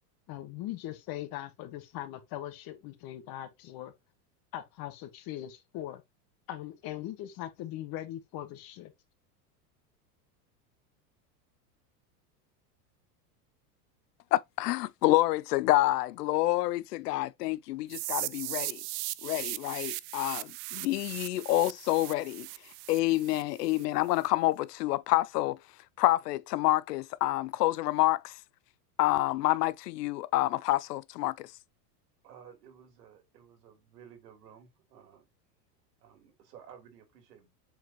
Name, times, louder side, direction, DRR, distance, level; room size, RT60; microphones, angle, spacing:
voice 1, 0.3-3.9 4.5-6.0 6.5-8.9, left 13 dB, 50° left, 1.6 m, -40 dB
voice 2, 14.3-18.8 19.2-22.5 22.9-25.6 26.0-28.4 29.0-31.5, left 17 dB, 90° left, 0.6 m, -28 dB
sound 1, 17.9-23.8, right 21 dB, 45° right, 0.5 m, -38 dB
voice 3, 32.2-35.3 36.0-37.5, right 8 dB, 85° right, 3.5 m, -54 dB
7.4 x 5.0 x 3.0 m
supercardioid pair, 115°, 47 cm